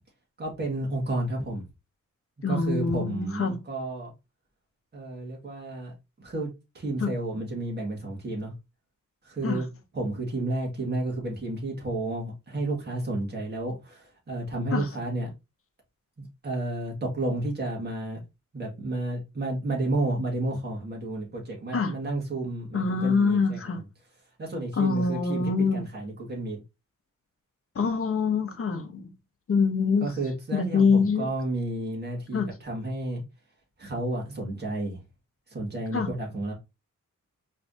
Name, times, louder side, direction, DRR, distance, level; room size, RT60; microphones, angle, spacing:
voice 1, 0.4-1.6 2.5-4.1 4.9-6.5 6.7-8.5 9.2-9.7 9.9-15.3 16.2-18.2 18.5-23.8 24.4-26.6 30.0-33.2 33.8-35.0 35.5-36.5, right 2 dB, 35° right, 1.9 m, -31 dB
voice 2, 2.4-3.6 7.0-7.1 9.4-9.6 14.7-14.9 21.7-21.9 22.7-23.8 24.8-25.8 27.7-29.1 29.5-30.1 30.5-31.3 32.3-32.5 35.9-36.1, left 5 dB, 45° left, 0.9 m, -25 dB
4.7 x 3.3 x 2.6 m
wide cardioid pair, 125°, 30 cm